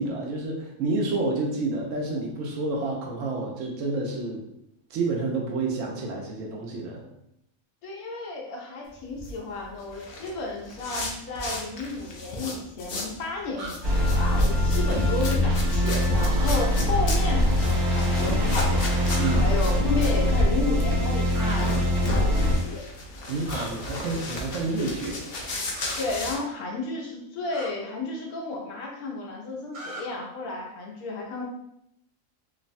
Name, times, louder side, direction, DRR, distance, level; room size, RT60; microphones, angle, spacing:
voice 1, 0.0-4.5 4.9-7.0 19.2-19.5 23.3-25.2, right 3 dB, 70° right, 0 dB, 0.9 m, -29 dB
voice 2, 7.8-18.8 19.4-21.8 22.1-22.8 26.0-31.4, left 3 dB, 85° left, -1 dB, 1.2 m, -32 dB
sound 1, 9.0-13.2 13.5-26.4, left 2 dB, 65° left, 0.5 m, -35 dB
sound 2, 13.6-13.7 16.3-16.7 19.1-19.4 21.3-21.6 23.4-23.7 25.7-26.0 27.5-27.7 29.7-30.0, right 1 dB, 85° right, 1.1 m, -38 dB
sound 3, 13.8-22.6, left 1 dB, 35° right, 0.9 m, -23 dB
3.1 x 2.0 x 2.6 m, 0.78 s
omnidirectional pair, 1.5 m